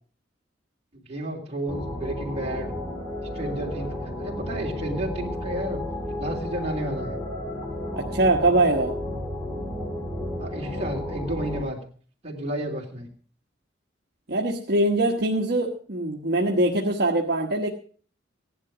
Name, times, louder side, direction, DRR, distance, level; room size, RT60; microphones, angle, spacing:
voice 1, 0.9-2.7 3.3-5.8 6.2-7.2 10.4-11.8 12.2-13.1, right 1 dB, 35° right, -1 dB, 3.2 m, -32 dB
sound 1, 1.7-11.6, left 1 dB, 10° left, 2.6 m, -32 dB
voice 2, 8.0-8.9 14.3-17.7, right 2 dB, 55° right, 0 dB, 1.2 m, -22 dB
16.0 x 11.0 x 4.9 m, 0.43 s
head